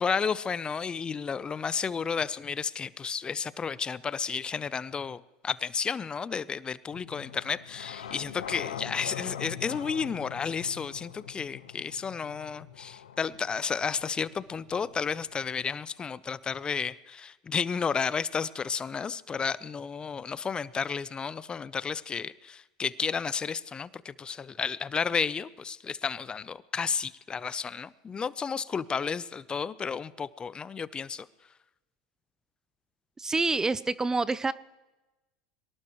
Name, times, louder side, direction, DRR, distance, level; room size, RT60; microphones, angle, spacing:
voice 1, 0.0-31.3, left 6 dB, 25° left, 18 dB, 0.6 m, -32 dB
sound 1, 6.9-15.7, left 10 dB, 85° left, 1.0 m, -43 dB
voice 2, 33.2-34.5, right 3 dB, 15° right, 18 dB, 0.5 m, -27 dB
23.0 x 19.0 x 3.1 m, 1.1 s
hypercardioid pair, 85°, 4 cm